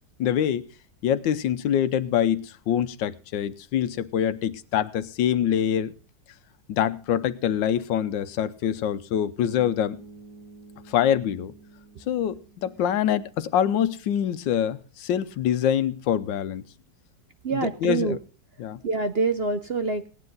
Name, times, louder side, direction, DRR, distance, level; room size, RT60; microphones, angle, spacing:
voice 1, 0.2-0.7 1.0-5.9 6.7-10.0 10.9-11.5 12.1-16.6 17.5-18.2 18.6-18.8, left 9 dB, 90° left, 14 dB, 1.5 m, -25 dB
sound 1, 9.5-13.6, right 3 dB, 10° right, 4.7 m, -49 dB
voice 2, 17.4-18.2 18.8-20.1, right 4 dB, 55° right, 8 dB, 0.7 m, -25 dB
18.0 x 9.9 x 4.0 m, 0.38 s
omnidirectional pair, 1.9 m